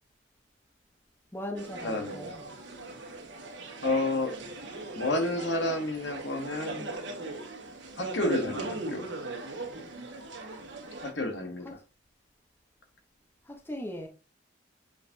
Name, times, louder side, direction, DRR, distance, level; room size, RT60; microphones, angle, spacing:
voice 1, 1.3-2.4 8.4-8.8 11.6-11.7 13.5-14.1, left 1 dB, 10° left, 1.1 m, -39 dB
sound 1, 1.6-11.1, right 2 dB, 70° right, 1.7 m, -39 dB
voice 2, 1.8-2.2 3.8-4.3 5.0-6.9 8.0-9.1 11.0-11.8, left 2 dB, 65° left, 1.4 m, -30 dB
7.0 x 5.1 x 2.8 m
head